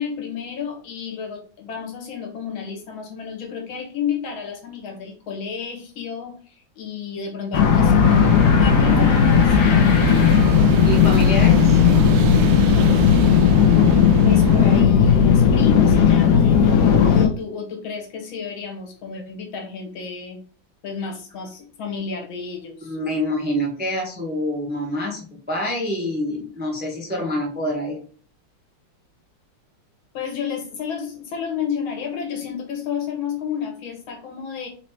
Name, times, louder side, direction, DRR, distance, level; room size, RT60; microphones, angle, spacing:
voice 1, 0.0-7.9 8.4-9.9 14.2-20.4 20.8-23.0 30.1-34.7, left 6 dB, 90° left, 3 dB, 1.9 m, -31 dB
sound 1, 7.5-17.3, left 7 dB, 65° left, 1.2 m, -15 dB
sound 2, 8.0-14.8, right 5 dB, 70° right, 0.9 m, -27 dB
voice 2, 10.8-11.8 22.9-28.0, equal, 10° right, -1 dB, 0.6 m, -26 dB
4.2 x 2.9 x 4.4 m, 0.41 s
omnidirectional pair, 2.1 m